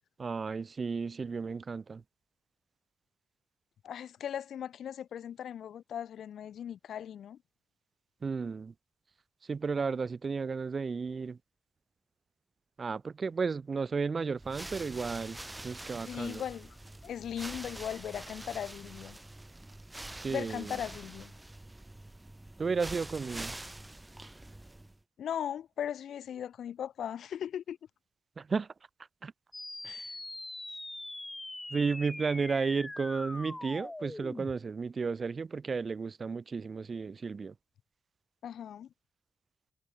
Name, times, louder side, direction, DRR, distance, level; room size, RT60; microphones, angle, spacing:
voice 1, 0.2-2.0 8.2-8.7 9.5-11.4 12.8-15.4 15.6-16.4 20.1-20.7 22.6-23.6 28.4-28.7 29.2-29.3 31.7-37.5, right 5 dB, 45° right, 0.5 m, -33 dB
voice 2, 3.8-7.4 16.1-16.8 17.0-19.2 20.3-21.3 25.2-27.8 29.8-30.2 38.4-38.9, left 9 dB, 85° left, 0.5 m, -38 dB
sound 1, 14.4-25.0, right 1 dB, 15° right, 2.1 m, -45 dB
sound 2, 29.5-34.5, left 2 dB, 15° left, 0.6 m, -42 dB
cardioid pair, 80°, 0 cm